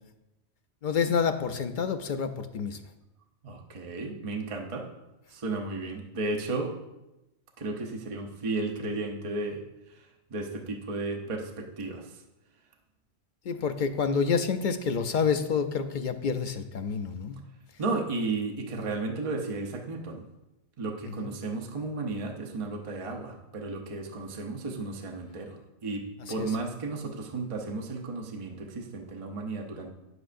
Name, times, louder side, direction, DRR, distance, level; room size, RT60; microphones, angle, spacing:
voice 1, 0.8-2.8 13.4-17.4 21.2-21.3 26.4-26.5, left 6 dB, 60° left, 8 dB, 0.5 m, -28 dB
voice 2, 3.4-4.9 5.3-6.7 7.6-9.6 9.9-12.2 17.8-20.3 20.8-29.9, right 3 dB, 35° right, 2 dB, 0.7 m, -34 dB
9.8 x 7.9 x 2.5 m, 0.96 s
omnidirectional pair, 1.2 m